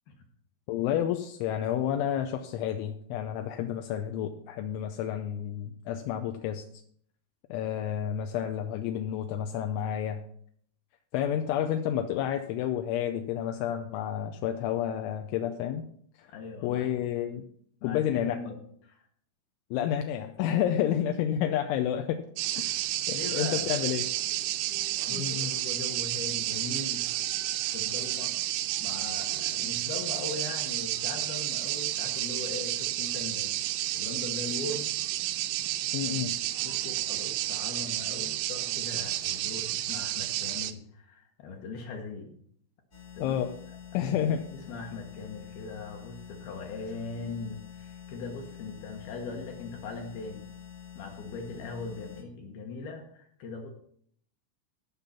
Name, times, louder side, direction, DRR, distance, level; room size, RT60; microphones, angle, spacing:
voice 1, 0.7-6.7 7.5-10.2 11.1-15.8 16.2-16.3 16.6-17.4 17.8-18.4 19.7-22.2 22.5-22.6 23.1-24.1 25.1-25.5 35.9-36.4 43.2-43.6 43.9-44.5, left 10 dB, 85° left, 6 dB, 3.0 m, -30 dB
voice 2, 16.3-16.9 17.8-19.1 22.6-22.8 23.1-23.9 25.0-27.1 27.7-28.3 28.8-34.9 36.6-42.3 43.2-43.4 44.1-50.5 51.0-53.7, left 3 dB, 65° left, 3 dB, 2.6 m, -40 dB
sound 1, 22.4-40.7, right 15 dB, 85° right, 3.2 m, -31 dB
sound 2, 42.9-52.2, left 9 dB, 45° left, 1.4 m, -47 dB
16.0 x 5.8 x 5.7 m, 0.63 s
omnidirectional pair, 5.8 m